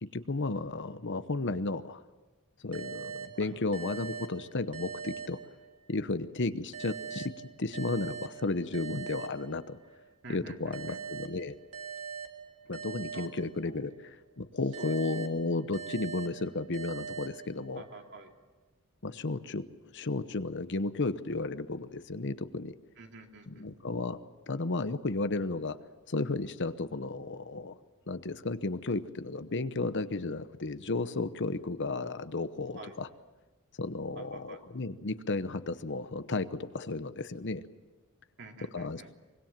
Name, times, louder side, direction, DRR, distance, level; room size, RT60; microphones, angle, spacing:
voice 1, 0.1-2.0 2.6-5.4 5.9-7.3 7.6-9.8 10.3-11.6 12.7-17.8 19.0-19.6 19.9-22.8 23.5-24.2 24.5-25.8 26.1-27.8 28.1-33.1 33.8-37.6 38.7-39.0, left 3 dB, 55° left, 12 dB, 0.9 m, -33 dB
sound 1, 2.7-6.1 6.7-10.0 10.7-14.1 14.7-18.0, right 6 dB, 85° right, 2.4 m, -43 dB
voice 2, 10.2-11.0 13.1-13.3 13.6-13.9 14.8-14.9 17.7-18.3 23.0-23.7 32.7-33.0 34.2-34.6 38.4-39.1, right 3 dB, 55° right, 3 dB, 2.7 m, -48 dB
24.5 x 21.5 x 7.5 m, 1.2 s
head